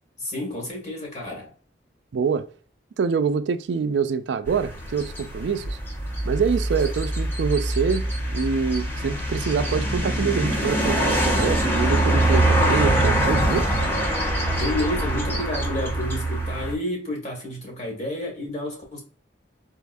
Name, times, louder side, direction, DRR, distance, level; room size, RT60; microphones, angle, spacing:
voice 1, 0.2-1.5 14.5-19.0, left 1 dB, 40° left, 1.8 m, -30 dB
voice 2, 2.1-2.5 3.0-5.8 6.2-8.1 8.3-13.7, right 6 dB, 80° right, 0.4 m, -25 dB
sound 1, 4.5-16.7, right 1 dB, 15° left, 0.8 m, -24 dB
4.0 x 3.5 x 2.6 m
head